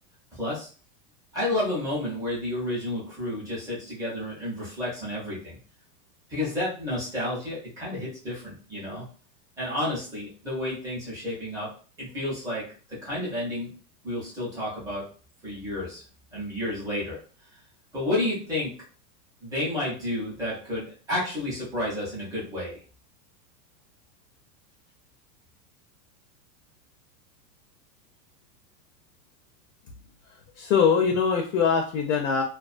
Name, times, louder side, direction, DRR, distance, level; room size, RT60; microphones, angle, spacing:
voice 1, 0.3-0.7 1.3-5.6 6.3-9.0 9.6-11.7 12.0-13.7 14.0-15.0 15.4-16.0 16.3-17.2 17.9-18.7 19.4-22.8, left 1 dB, 5° right, -8 dB, 0.6 m, -31 dB
voice 2, 30.6-32.4, left 6 dB, 55° left, 2 dB, 0.6 m, -22 dB
2.3 x 2.3 x 2.4 m, 0.39 s
supercardioid pair, 160°, 49 cm